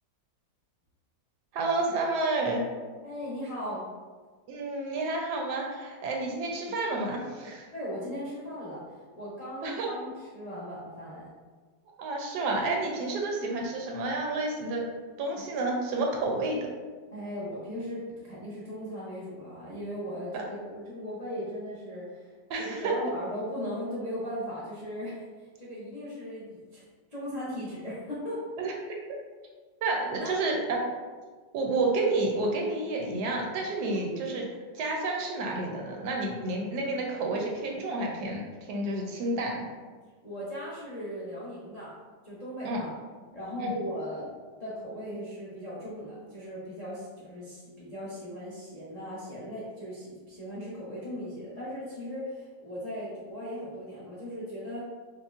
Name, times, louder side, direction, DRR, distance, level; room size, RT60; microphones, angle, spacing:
voice 1, 1.5-2.6 4.5-7.7 9.6-9.9 12.0-14.8 15.2-16.7 20.3-20.4 22.5-23.0 28.6-28.7 29.8-30.9 31.5-34.4 34.7-39.7 42.6-42.8 43.6-43.7, right 2 dB, 75° right, 0 dB, 1.1 m, -30 dB
voice 2, 3.0-3.8 7.7-11.3 17.1-22.3 22.6-26.8 27.1-28.4 30.2-30.4 40.2-41.9 42.2-42.9 43.3-44.3 44.6-54.8, equal, 55° left, -9 dB, 0.4 m, -38 dB
5.2 x 2.1 x 2.4 m, 1.4 s
omnidirectional pair, 1.9 m